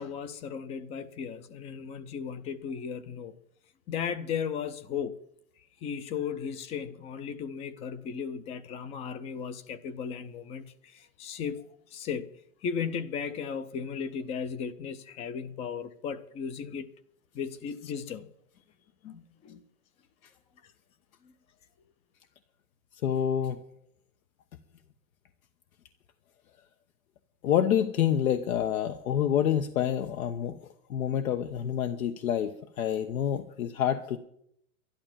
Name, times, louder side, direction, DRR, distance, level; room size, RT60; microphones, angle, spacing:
voice 1, 0.0-3.3 3.9-5.2 5.8-12.3 12.6-16.9 17.3-18.3 19.0-19.6 21.2-21.3, left 7 dB, 15° left, 0.4 m, -36 dB
voice 2, 23.0-23.6 27.4-30.6 30.9-34.2, left 9 dB, 80° left, 1.1 m, -27 dB
12.0 x 11.5 x 7.4 m
supercardioid pair, 150°, 41 cm